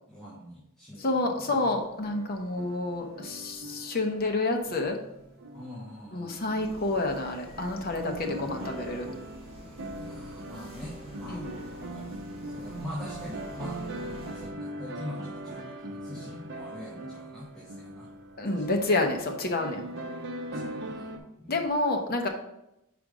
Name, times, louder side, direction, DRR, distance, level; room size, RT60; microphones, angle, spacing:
voice 1, 0.1-1.7 5.5-6.6 10.0-12.1 12.5-18.1 18.5-18.8 20.5-21.1 21.4-21.6, left 1 dB, ahead, -7 dB, 1.2 m, -44 dB
voice 2, 1.0-5.0 6.1-9.1 11.3-11.5 18.4-19.8 21.5-22.3, left 2 dB, 45° left, 4 dB, 0.8 m, -29 dB
sound 1, 1.5-6.1 6.7-6.8 7.5-21.2, right 1 dB, 50° right, 0.7 m, -40 dB
sound 2, 6.6-14.5, left 1 dB, 25° right, 1.7 m, -47 dB
5.0 x 5.0 x 4.9 m, 0.86 s
head